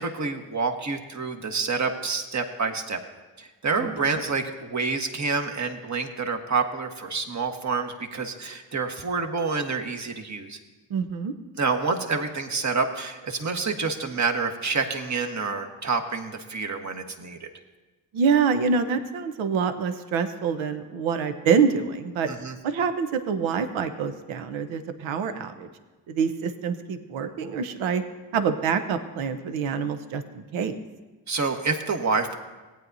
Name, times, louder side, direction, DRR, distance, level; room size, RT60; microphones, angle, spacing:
voice 1, 0.0-3.0 3.4-10.6 11.6-17.5 22.3-22.5 31.3-32.4, right 4 dB, 35° right, 4 dB, 1.4 m, -28 dB
voice 2, 10.9-11.3 18.1-22.3 22.6-25.7 26.1-28.0 28.3-30.8, right 6 dB, 65° right, 9 dB, 1.0 m, -26 dB
18.0 x 9.1 x 2.7 m, 1.2 s
hypercardioid pair, 40°, 50 cm